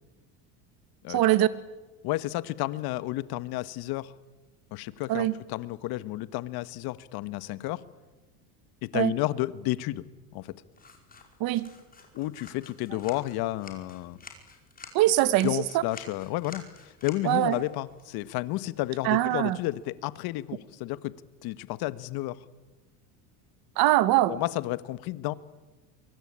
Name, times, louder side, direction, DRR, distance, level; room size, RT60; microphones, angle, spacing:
voice 1, 1.1-1.5 5.1-5.3 8.9-9.1 11.4-11.7 14.9-15.8 17.2-17.6 19.0-19.6 23.8-24.4, right 15 dB, 55° right, 14 dB, 1.9 m, -23 dB
voice 2, 2.0-4.1 4.7-7.8 8.8-10.0 10.3-10.5 12.1-14.2 15.4-21.1 21.4-22.4 24.3-25.3, left 17 dB, 55° left, 15 dB, 1.5 m, -31 dB
sound 1, 10.7-19.8, left 4 dB, 20° left, 5.0 m, -51 dB
24.5 x 23.5 x 8.8 m, 1.1 s
supercardioid pair, 115°, 44 cm